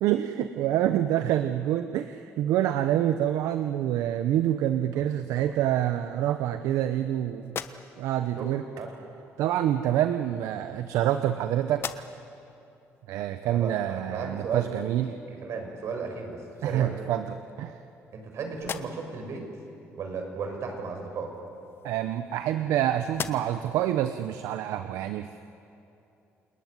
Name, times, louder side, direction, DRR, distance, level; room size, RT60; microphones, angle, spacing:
voice 1, 0.0-7.6 8.0-8.6 9.4-11.9 13.1-15.1 16.6-17.8 21.8-25.4, right 11 dB, 85° right, 9 dB, 0.9 m, -27 dB
sound 1, 7.4-8.3 9.4-9.6 10.5-11.4 11.7-12.4 12.9-13.0 15.7-15.8 16.2-16.9 17.5-18.2 18.5-19.3 21.3-22.7 23.1-23.8, left 7 dB, 50° left, 1.2 m, -40 dB
voice 2, 13.4-14.7 15.1-16.9 18.1-19.5 20.0-21.3, right 5 dB, 65° right, 4 dB, 6.1 m, -35 dB
29.0 x 20.0 x 9.8 m, 2.8 s
cardioid pair, 95°, 5 cm